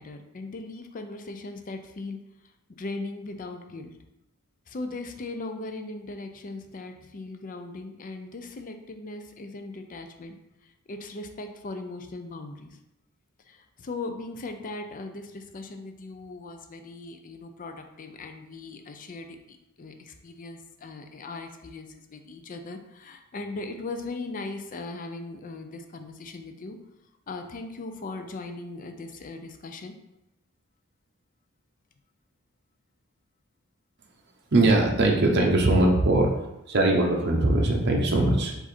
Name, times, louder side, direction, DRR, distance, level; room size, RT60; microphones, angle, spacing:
voice 1, 0.0-2.2 2.8-3.9 4.7-10.3 10.6-12.8 13.5-26.8 27.3-29.9, left 3 dB, 40° left, 6 dB, 0.4 m, -38 dB
voice 2, 34.5-36.4 36.7-38.5, right 2 dB, 50° right, 0 dB, 0.8 m, -21 dB
4.8 x 2.6 x 4.2 m, 0.89 s
head